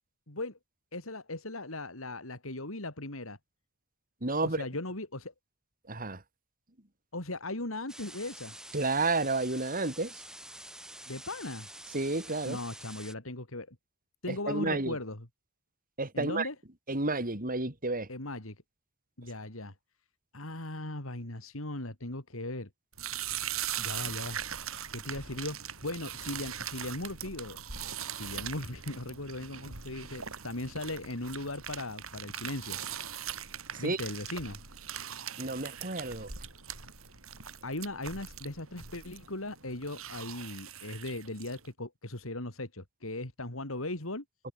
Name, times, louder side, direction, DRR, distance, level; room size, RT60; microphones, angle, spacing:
voice 1, 0.3-0.6 0.9-3.4 4.4-5.3 7.1-8.6 11.1-11.7 12.5-13.8 14.2-15.3 16.1-16.6 18.1-18.6 19.2-19.7 20.3-22.7 23.8-27.9 28.1-32.8 33.8-34.6 37.6-44.2, left 2 dB, 75° left, 4.0 m, -38 dB
voice 2, 4.2-4.6 5.9-6.2 8.7-10.1 11.9-12.6 14.3-14.9 16.0-16.5 16.9-18.1 33.7-34.0 35.4-36.3, right 3 dB, 45° right, 4.2 m, -31 dB
sound 1, 7.9-13.1, right 1 dB, 5° right, 5.4 m, -47 dB
sound 2, 22.9-41.7, right 9 dB, 80° right, 7.8 m, -41 dB
head